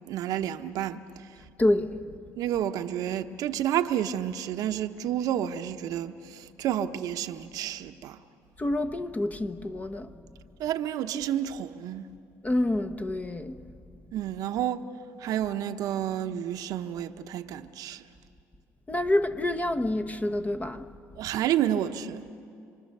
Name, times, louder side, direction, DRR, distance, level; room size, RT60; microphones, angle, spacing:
voice 1, 0.1-1.0 2.4-8.2 10.6-12.1 14.1-14.8 15.2-18.0 21.2-22.3, right 11 dB, 70° right, 1.0 m, -30 dB
voice 2, 1.6-2.0 8.6-10.1 12.4-13.6 18.9-20.9, left 1 dB, 25° left, 1.3 m, -27 dB
28.0 x 25.0 x 6.7 m
supercardioid pair, 85°, 6 cm